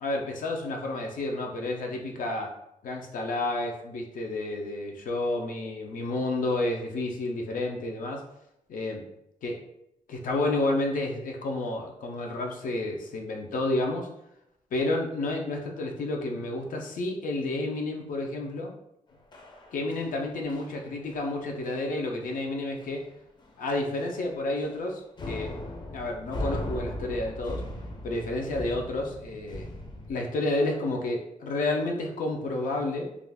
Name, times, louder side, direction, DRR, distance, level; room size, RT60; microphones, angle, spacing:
voice 1, 0.0-2.5 2.8-8.2 8.7-9.0 9.4-9.6 10.1-14.1 14.7-18.7 19.7-23.0 23.6-25.0 25.3-25.5 25.9-27.6 28.0-29.7 30.1-33.1, left 2 dB, 90° left, 1 dB, 0.5 m, -30 dB
sound 1, 19.3-20.2 20.5-20.8 21.1-21.3 21.6-21.8 22.2-22.3 22.8-23.1 23.4-23.6 24.0-24.9 25.2-30.1, left 1 dB, 35° left, 0.4 m, -38 dB
2.4 x 2.3 x 3.3 m, 0.82 s
wide cardioid pair, 140°, 14 cm